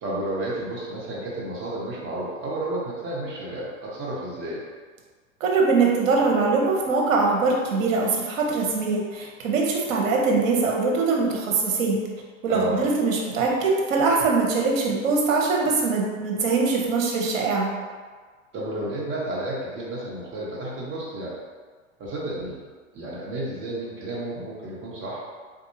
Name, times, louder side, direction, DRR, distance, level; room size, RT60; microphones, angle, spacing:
voice 1, 0.0-4.7 12.5-12.8 18.5-21.4 22.0-22.6 22.9-25.2, right 1 dB, 30° right, -6 dB, 1.2 m, -31 dB
voice 2, 5.4-12.0 12.4-17.7, right 4 dB, 75° right, -1 dB, 1.0 m, -22 dB
4.2 x 2.6 x 2.7 m, 1.5 s
hypercardioid pair, 115°, 40 cm